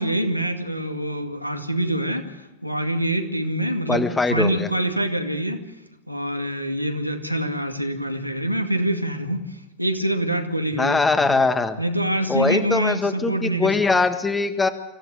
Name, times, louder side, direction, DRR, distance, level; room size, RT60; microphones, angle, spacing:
voice 1, 0.0-5.6 6.1-11.4 11.8-13.7, right 1 dB, 90° right, 4 dB, 2.1 m, -25 dB
voice 2, 3.9-4.7 10.8-11.8 12.3-14.7, left 3 dB, 10° left, 9 dB, 1.7 m, -21 dB
25.5 x 15.5 x 8.3 m, 1.0 s
figure-of-eight pair, 90°, 0 cm